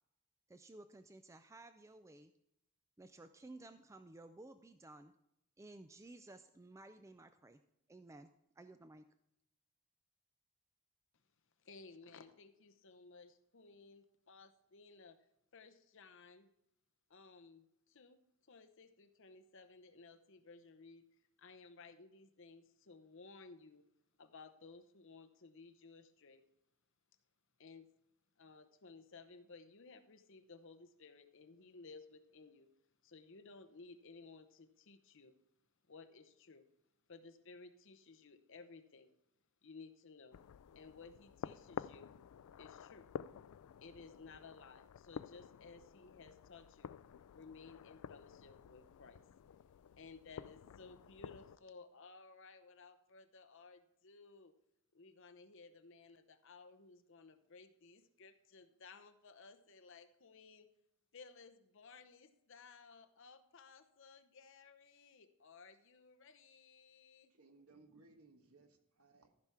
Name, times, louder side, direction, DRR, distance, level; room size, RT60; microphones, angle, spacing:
voice 1, 0.5-2.3 3.0-5.1 5.6-7.6 7.9-8.3 8.6-9.1, right 2 dB, 15° right, 10 dB, 0.3 m, -55 dB
voice 2, 11.1-16.5 17.1-23.9 24.2-26.5 27.6-27.9 28.4-35.4 35.9-36.7 37.1-39.1 39.6-40.4 40.7-42.1 42.4-43.1 43.4-47.0 47.3-49.6 50.0-54.5 54.9-60.7 61.1-67.3, left 4 dB, 60° left, 8 dB, 0.9 m, -58 dB
sound 1, 40.3-51.6, left 8 dB, 80° left, 0.3 m, -51 dB
voice 3, 67.3-69.3, right 3 dB, 75° right, 6 dB, 1.5 m, -64 dB
14.0 x 5.8 x 4.8 m, 0.80 s
head